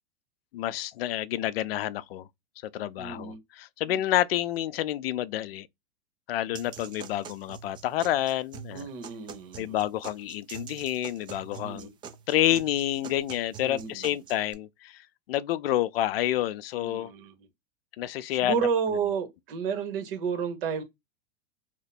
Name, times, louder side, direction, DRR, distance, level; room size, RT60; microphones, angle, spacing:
voice 1, 0.5-2.3 2.7-5.7 6.3-8.9 9.6-11.9 12.3-17.1 18.0-18.6, left 13 dB, 80° left, 0.5 m, -29 dB
voice 2, 3.0-3.4 3.9-4.1 8.7-9.7 11.6-11.9 13.6-14.1 16.8-17.3 18.4-20.8, right 6 dB, 65° right, 1.2 m, -31 dB
sound 1, 6.5-14.5, right 7 dB, 15° right, 0.3 m, -45 dB
2.9 x 2.1 x 4.1 m
supercardioid pair, 130°, 29 cm